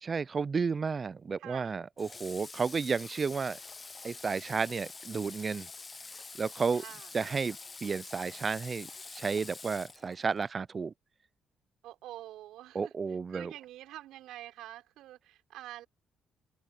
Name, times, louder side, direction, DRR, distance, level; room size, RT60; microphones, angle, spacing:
voice 1, 0.0-3.6 4.0-5.7 6.4-6.8 7.1-10.9 12.7-13.5, right 5 dB, 35° right, 0.4 m, -32 dB
voice 2, 1.4-1.8 6.7-7.1 11.8-12.9 13.3-15.9, right 14 dB, 90° right, 5.9 m, -47 dB
Water / Water tap faucet, 2.0-10.5, left 4 dB, 30° left, 0.6 m, -47 dB
open air
cardioid pair, 90°, 0 cm